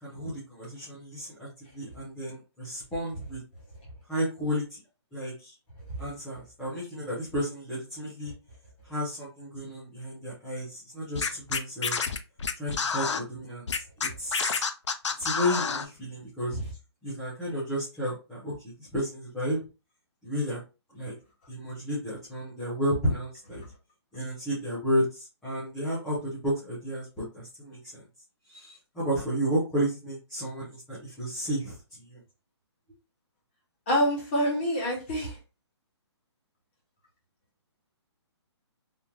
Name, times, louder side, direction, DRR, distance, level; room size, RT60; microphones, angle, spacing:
voice 1, 0.0-3.4 4.1-4.8 5.1-5.5 6.0-8.3 8.8-12.0 12.6-14.6 15.2-16.6 17.0-18.5 18.8-19.6 20.2-20.6 20.9-21.1 21.5-23.6 24.1-27.1 27.3-28.0 28.5-32.2, equal, ahead, -12 dB, 0.3 m, -32 dB
Scratching (performance technique), 11.1-13.2 13.7-15.9, left 5 dB, 85° left, 0.6 m, -28 dB
voice 2, 33.9-35.4, equal, 25° left, -3 dB, 1.4 m, -26 dB
3.5 x 2.7 x 2.9 m, 0.29 s
hypercardioid pair, 175°, 15 cm